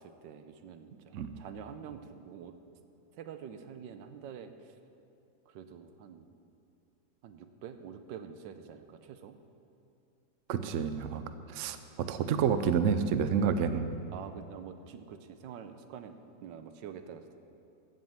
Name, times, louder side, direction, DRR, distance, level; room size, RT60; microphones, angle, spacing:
voice 1, 0.0-2.5 3.1-4.8 5.5-6.3 7.2-9.4 14.1-17.4, right 7 dB, 85° right, 9 dB, 1.4 m, -46 dB
voice 2, 1.1-1.4 10.5-11.2 11.5-11.8 12.1-13.9, right 7 dB, 70° right, 10 dB, 0.7 m, -29 dB
15.0 x 5.4 x 7.1 m, 2.7 s
omnidirectional pair, 1.9 m